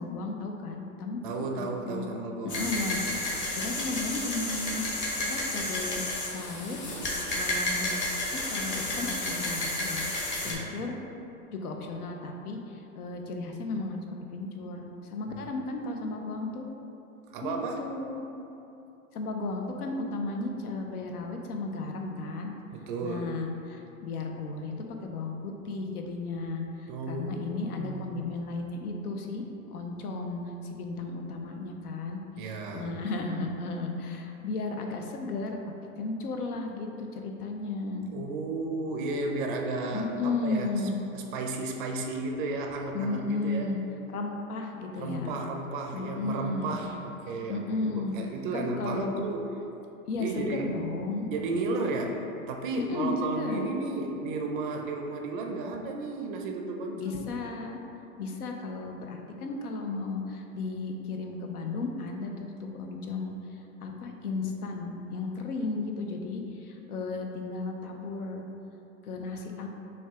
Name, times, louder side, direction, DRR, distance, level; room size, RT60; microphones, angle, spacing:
voice 1, 0.0-2.3 2.6-6.0 6.3-6.8 7.3-7.9 8.3-10.0 10.4-11.0 11.5-14.0 14.3-16.7 17.4-18.2 19.1-22.5 23.0-24.7 25.0-29.4 29.7-35.6 36.0-38.1 39.9-41.0 42.9-43.8 44.1-45.4 45.9-46.7 47.5-48.1 48.5-49.2 50.1-51.3 52.8-53.6 57.0-57.8 58.2-63.3 63.8-68.5 69.0-69.7, left 3 dB, 85° left, 3 dB, 0.7 m, -34 dB
voice 2, 1.2-2.9 10.4-10.8 15.3-15.4 17.3-17.9 22.7-23.3 26.9-28.2 32.4-32.9 38.1-40.7 41.1-43.7 45.0-49.5 50.2-50.7 51.3-57.3, right 3 dB, 40° right, 2 dB, 0.4 m, -34 dB
sound 1, 2.5-10.5, left 1 dB, 25° left, 0.8 m, -31 dB
6.2 x 2.3 x 3.5 m, 2.9 s
hypercardioid pair, 120°, 44 cm